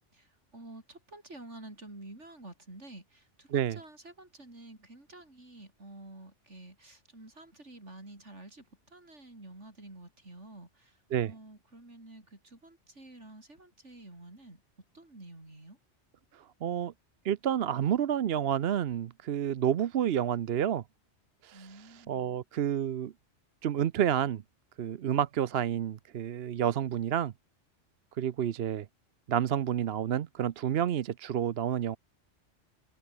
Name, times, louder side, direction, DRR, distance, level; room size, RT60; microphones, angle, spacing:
voice 1, 0.1-14.6 14.9-15.8 21.5-22.4, right 2 dB, 85° right, 6.2 m, -50 dB
voice 2, 16.6-16.9 17.2-20.8 21.4-21.7 22.1-23.1 23.6-24.4 24.8-27.3 28.2-28.9 29.3-32.0, right 10 dB, 65° right, 0.9 m, -29 dB
omnidirectional pair, 1.2 m